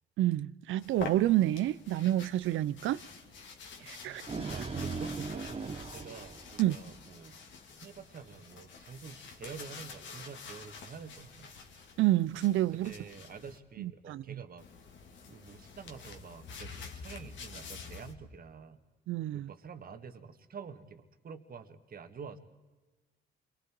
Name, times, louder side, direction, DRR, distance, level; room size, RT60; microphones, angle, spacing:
voice 1, 0.2-3.0 3.8-4.5 6.6-6.8 12.0-12.9 13.8-14.2 19.1-19.5, right 14 dB, 80° right, 0.6 m, -29 dB
sound 1, 0.8-13.6 14.6-18.1, left 5 dB, 70° left, 2.6 m, -48 dB
voice 2, 3.8-4.2 4.5-7.4 7.8-11.5 12.7-14.7 15.3-18.8 19.3-22.4, right 5 dB, 45° right, 1.8 m, -48 dB
sound 2, 3.9-7.2, right 4 dB, 30° right, 1.2 m, -39 dB
29.0 x 23.0 x 4.6 m
cardioid pair, 90°, 20 cm